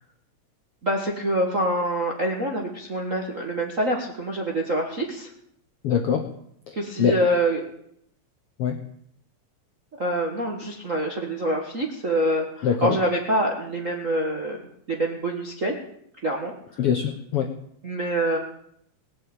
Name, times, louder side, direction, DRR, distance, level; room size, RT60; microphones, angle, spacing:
voice 1, 0.8-5.3 6.7-7.6 10.0-14.6 14.9-15.7 16.2-16.5 17.8-18.4, right 1 dB, 40° right, 0 dB, 1.1 m, -25 dB
voice 2, 5.8-6.3 6.7-7.2 8.6-8.8 12.6-13.0 16.8-17.5, left 8 dB, 70° left, 5 dB, 1.4 m, -23 dB
18.5 x 7.4 x 8.9 m, 0.72 s
omnidirectional pair, 3.9 m